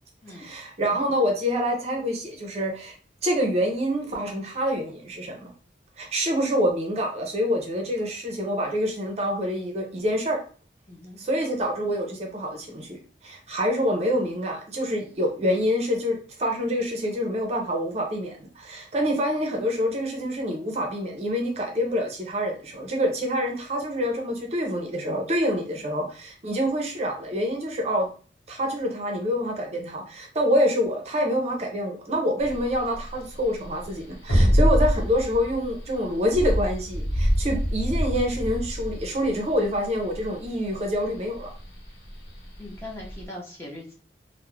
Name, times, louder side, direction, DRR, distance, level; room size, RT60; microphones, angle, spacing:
voice 1, 0.3-2.9 3.2-5.5 6.0-10.4 11.2-28.1 28.5-41.5, equal, 35° right, 2 dB, 0.5 m, -26 dB
voice 2, 10.9-11.2 25.6-25.8 42.6-43.9, left 1 dB, 15° left, -3 dB, 0.6 m, -41 dB
sound 1, 32.4-43.2, equal, 85° left, 0.8 m, -25 dB
2.4 x 2.0 x 3.0 m, 0.40 s
head